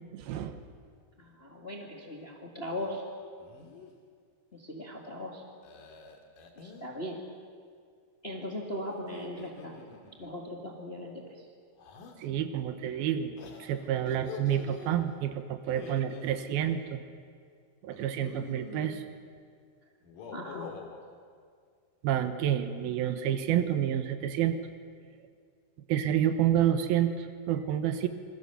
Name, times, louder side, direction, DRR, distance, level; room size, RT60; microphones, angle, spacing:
voice 1, 0.1-0.6 12.2-13.3 13.6-17.0 17.8-19.0 22.0-24.6 25.9-28.1, right 10 dB, 75° right, 9 dB, 3.0 m, -29 dB
voice 2, 1.2-3.0 4.5-5.4 6.5-7.2 8.2-9.8 10.2-11.3 20.3-20.7, left 1 dB, 25° left, 0 dB, 1.5 m, -39 dB
sound 1, 2.7-3.0 3.4-3.9 5.6-6.9 8.9-10.3 11.8-12.2 13.4-14.9 15.6-16.5 17.9-19.0 20.0-21.0, left 6 dB, 60° left, 3.6 m, -46 dB
26.5 x 22.5 x 6.9 m, 2.1 s
omnidirectional pair, 4.4 m